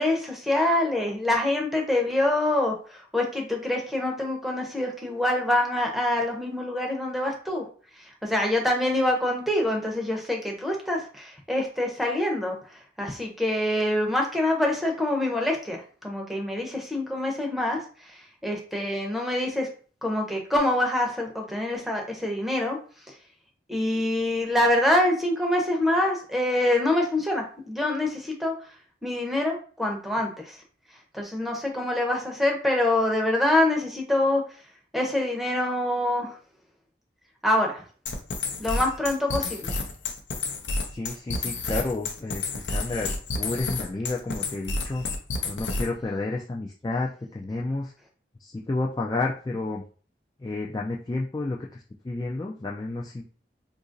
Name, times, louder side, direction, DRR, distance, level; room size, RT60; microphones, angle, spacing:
voice 1, 0.0-7.6 8.2-12.6 13.0-17.8 18.1-19.7 20.0-22.8 23.7-28.5 29.0-30.6 31.1-34.4 34.9-36.3 37.4-37.8 38.6-39.7, left 1 dB, ahead, 0 dB, 0.7 m, -25 dB
sound 1, 38.1-46.0, left 3 dB, 85° left, 0.6 m, -30 dB
voice 2, 40.9-45.0 45.5-47.9 48.4-49.8 50.4-51.6 52.0-53.2, left 2 dB, 20° left, -2 dB, 0.3 m, -31 dB
2.9 x 2.5 x 3.8 m, 0.41 s
head